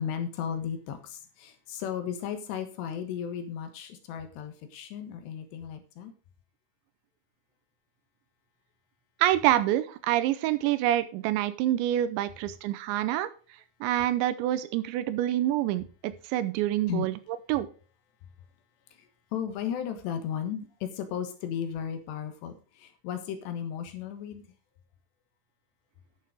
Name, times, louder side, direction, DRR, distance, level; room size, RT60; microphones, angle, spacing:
voice 1, 0.0-6.1 16.9-17.1 18.9-24.4, left 8 dB, 70° left, 3.3 m, -35 dB
voice 2, 9.2-13.3 13.8-17.1 17.5-17.7, right 13 dB, 85° right, 3.0 m, -26 dB
11.5 x 6.8 x 5.0 m
omnidirectional pair, 5.3 m